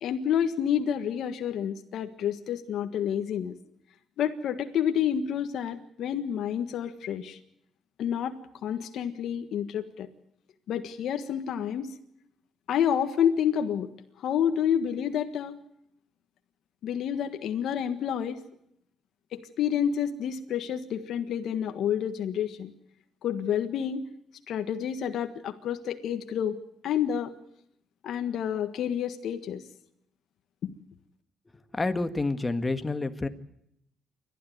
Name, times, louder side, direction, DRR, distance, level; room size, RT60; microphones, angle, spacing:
voice 1, 0.0-3.5 4.2-7.4 8.0-10.1 10.7-11.9 12.7-13.9 14.2-15.6 16.8-18.4 19.3-22.7 23.2-24.0 24.5-26.6 26.8-27.3 28.0-29.6 30.6-30.7, left 9 dB, 75° left, 7 dB, 1.5 m, -29 dB
voice 2, 31.7-33.3, left 3 dB, 20° left, 9 dB, 1.8 m, -28 dB
29.0 x 12.5 x 9.4 m, 0.75 s
cardioid pair, 90°, 0 cm